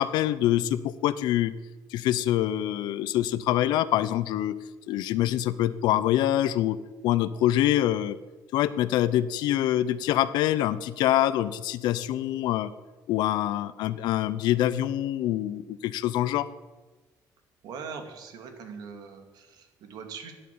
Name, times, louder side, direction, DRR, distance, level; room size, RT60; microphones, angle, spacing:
voice 1, 0.0-1.5 1.9-4.6 4.9-6.8 7.0-8.2 8.5-12.7 13.1-16.5, left 13 dB, 85° left, 14 dB, 0.7 m, -25 dB
voice 2, 17.6-20.3, right 5 dB, 65° right, 6 dB, 2.5 m, -41 dB
13.0 x 10.5 x 8.6 m, 1.2 s
cardioid pair, 155°, 7 cm